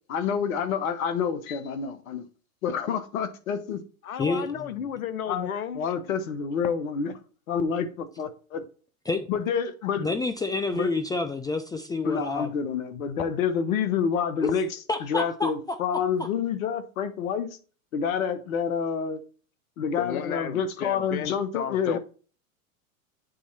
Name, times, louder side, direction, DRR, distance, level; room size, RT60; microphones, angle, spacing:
voice 1, 0.1-2.2 2.6-3.8 5.3-5.5 5.7-7.2 7.5-8.6 9.3-10.1 10.7-10.9 12.0-14.7 15.0-17.5 17.9-19.2 19.8-22.0, left 7 dB, 70° left, 1.3 m, -28 dB
voice 2, 4.0-5.8 20.0-22.0, left 8 dB, 85° left, 0.8 m, -33 dB
voice 3, 10.0-12.5 14.4-14.5 14.9-15.8 16.2-16.3, left 3 dB, 10° left, 0.4 m, -28 dB
8.4 x 4.3 x 4.1 m
hypercardioid pair, 95°, 42 cm